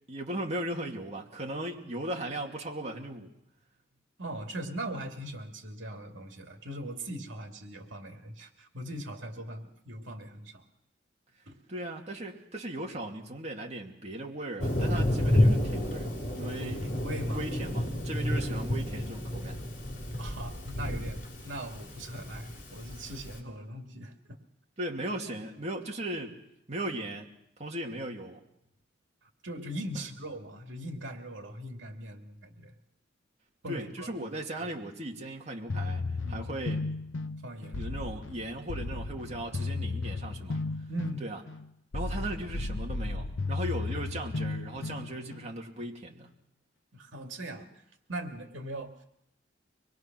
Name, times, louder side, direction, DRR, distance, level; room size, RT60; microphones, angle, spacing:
voice 1, 0.1-3.3 11.7-16.1 16.3-16.9 17.3-19.6 24.8-26.3 26.7-27.3 27.6-28.4 33.7-36.0 36.3-36.9 37.8-40.6 41.2-41.4 41.9-46.3, right 1 dB, 35° right, 0 dB, 2.5 m, -37 dB
voice 2, 4.2-10.7 11.5-11.6 16.8-17.4 20.2-24.4 29.4-32.8 33.6-34.1 34.6-34.7 36.2-36.5 37.4-37.9 40.9-41.3 46.9-47.7 48.1-48.9, right 1 dB, 75° right, 4 dB, 2.4 m, -40 dB
Thunder, 14.6-23.3, left 1 dB, 45° left, 3.9 m, -30 dB
sound 1, 35.7-45.5, left 3 dB, 85° left, 0.8 m, -34 dB
25.0 x 21.5 x 6.1 m, 0.79 s
head